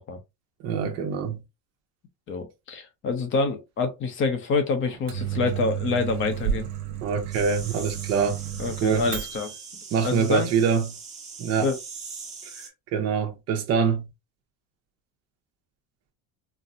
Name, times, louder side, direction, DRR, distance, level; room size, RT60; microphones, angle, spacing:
voice 1, 0.6-1.4 7.0-8.4 8.8-9.1 9.9-10.9 11.4-11.7 12.9-14.0, right 6 dB, 45° right, 0.8 m, -24 dB
voice 2, 2.3-6.7 8.6-9.5 10.0-10.5 11.6-11.8, left 4 dB, 35° left, 0.6 m, -26 dB
Microwave oven, 4.8-9.7, right 10 dB, 70° right, 1.1 m, -32 dB
sound 1, 7.3-12.7, right 5 dB, 20° right, 1.1 m, -41 dB
4.2 x 2.0 x 2.6 m
cardioid pair, 160°, 35 cm